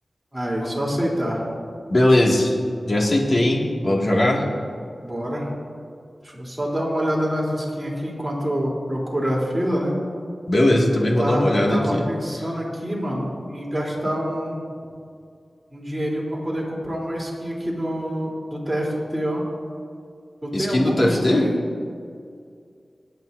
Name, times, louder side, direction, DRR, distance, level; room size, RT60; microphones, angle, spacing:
voice 1, 0.3-1.4 5.0-5.5 6.2-10.0 11.0-14.6 15.7-19.4 20.4-21.5, equal, 15° right, -4 dB, 3.4 m, -26 dB
voice 2, 1.9-2.6 2.9-4.4 10.5-12.0 20.5-21.5, left 1 dB, 55° left, -2 dB, 2.1 m, -19 dB
26.5 x 9.2 x 2.7 m, 2.2 s
wide cardioid pair, 85°, 0 cm